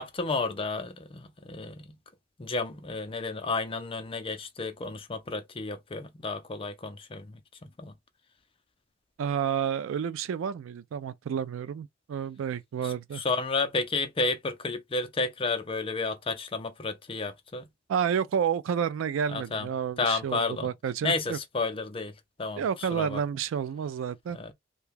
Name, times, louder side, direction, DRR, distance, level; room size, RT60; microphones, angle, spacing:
voice 1, 0.0-2.0 2.4-7.4 7.8-7.9 12.8-17.7 19.3-19.7 20.0-20.7 21.0-22.1 22.4-23.2 24.3-24.5, left 3 dB, 30° left, 0.5 m, -32 dB
voice 2, 9.2-13.2 17.9-21.4 22.6-24.4, right 7 dB, 75° right, 0.3 m, -30 dB
2.8 x 2.2 x 3.4 m
head